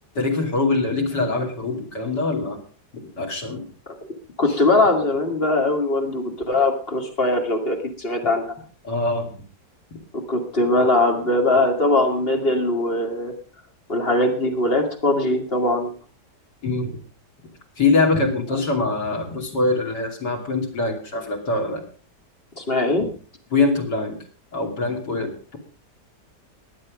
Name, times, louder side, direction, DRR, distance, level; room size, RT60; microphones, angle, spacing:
voice 1, 0.2-2.6 2.9-3.6 4.5-4.6 8.8-9.3 16.6-17.0 17.8-21.8 23.0-23.1 23.5-24.2 24.5-25.6, left 3 dB, 75° left, 2 dB, 3.5 m, -23 dB
voice 2, 4.4-8.5 10.3-13.3 13.9-15.9 22.6-23.1, left 2 dB, 35° left, 3 dB, 2.6 m, -21 dB
21.5 x 7.7 x 5.1 m, 0.39 s
omnidirectional pair, 1.8 m